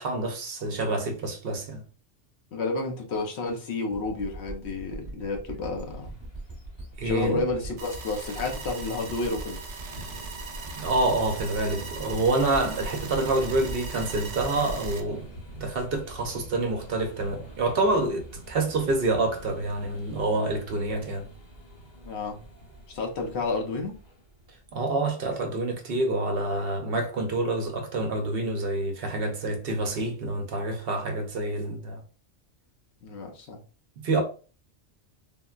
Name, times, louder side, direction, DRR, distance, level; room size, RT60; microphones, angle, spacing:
voice 1, 0.0-1.8 7.0-7.4 10.8-21.3 24.7-32.0 34.0-34.2, right 2 dB, 60° right, 0.8 m, -27 dB
voice 2, 2.5-6.1 7.0-9.6 22.0-22.4 22.9-24.0 33.0-33.6, left 3 dB, 70° left, 1.0 m, -30 dB
sound 1, 3.9-16.5, right 2 dB, 20° right, 1.0 m, -41 dB
sound 2, 5.7-24.8, right 1 dB, 40° left, 0.9 m, -46 dB
sound 3, 7.8-15.0, right 4 dB, 85° right, 0.9 m, -40 dB
3.7 x 2.1 x 2.3 m
omnidirectional pair, 1.2 m